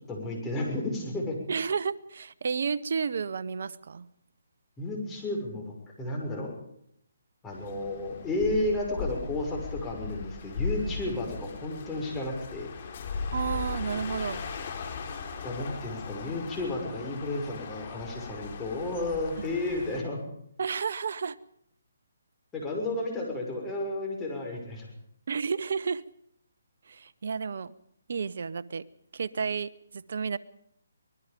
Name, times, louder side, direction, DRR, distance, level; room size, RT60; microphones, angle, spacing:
voice 1, 0.1-1.4 4.8-5.7 6.0-6.5 7.4-12.7 15.4-20.2 22.5-24.9, left 2 dB, 10° left, -2 dB, 6.2 m, -32 dB
voice 2, 1.5-4.1 13.3-14.4 20.6-21.4 25.3-26.0 26.9-27.7 28.1-28.8 29.1-30.4, right 5 dB, 60° right, 14 dB, 1.0 m, -31 dB
sound 1, 7.5-20.0, left 4 dB, 45° left, 3.9 m, -38 dB
24.5 x 20.0 x 5.3 m, 0.71 s
hypercardioid pair, 150°, 0 cm